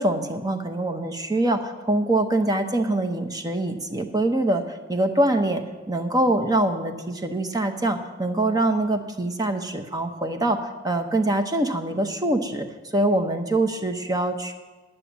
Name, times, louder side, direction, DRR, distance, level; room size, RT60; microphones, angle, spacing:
voice 1, 0.0-4.6 4.9-10.6 10.8-12.7 12.9-14.5, right 1 dB, 20° right, 6 dB, 0.9 m, -24 dB
9.9 x 8.5 x 7.2 m, 1.2 s
head